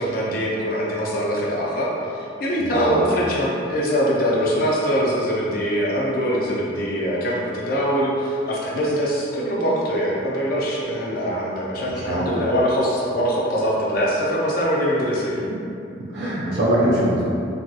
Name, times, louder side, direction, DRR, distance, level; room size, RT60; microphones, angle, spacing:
voice 1, 0.0-15.4, equal, 50° left, -5 dB, 0.5 m, -23 dB
voice 2, 2.6-3.1 11.9-12.4 16.1-17.3, right 1 dB, 60° right, -6 dB, 0.4 m, -22 dB
3.3 x 2.3 x 2.7 m, 2.6 s
head